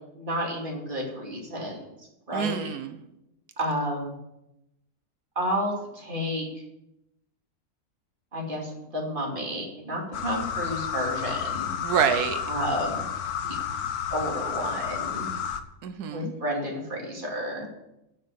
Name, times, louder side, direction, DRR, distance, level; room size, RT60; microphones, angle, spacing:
voice 1, 0.1-1.8 2.3-2.7 3.6-4.1 5.4-6.6 8.3-11.7 12.4-13.1 13.4-13.6 14.1-15.3 16.1-17.7, equal, 35° right, -1 dB, 2.9 m, -31 dB
voice 2, 2.3-2.9 11.8-12.4 15.8-16.3, right 8 dB, 90° right, 9 dB, 1.3 m, -26 dB
sound 1, 10.1-15.6, left 8 dB, 75° left, 1.3 m, -31 dB
9.9 x 6.5 x 8.2 m, 0.87 s
omnidirectional pair, 1.6 m